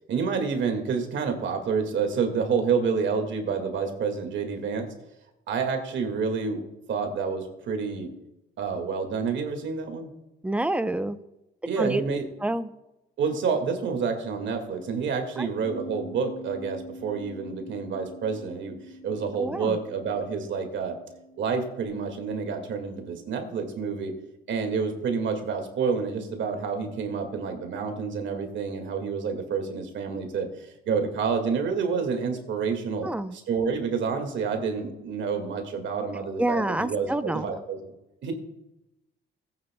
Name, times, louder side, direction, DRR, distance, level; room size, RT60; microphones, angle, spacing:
voice 1, 0.1-4.9 5.5-6.6 6.9-8.1 8.6-10.1 11.7-12.2 13.2-18.8 19.0-21.0 21.4-24.1 24.5-33.1 33.5-37.8 38.2-38.3, right 5 dB, 70° right, 5 dB, 1.9 m, -28 dB
voice 2, 10.4-11.2 11.8-12.0 12.4-12.7 15.4-15.5 19.4-19.8 33.0-33.4 36.4-37.6, right 1 dB, 5° right, 12 dB, 0.6 m, -28 dB
Bass guitar, 15.6-21.9, equal, 70° left, 1.8 m, -45 dB
15.5 x 9.0 x 2.2 m, 0.93 s
cardioid pair, 90°, 20 cm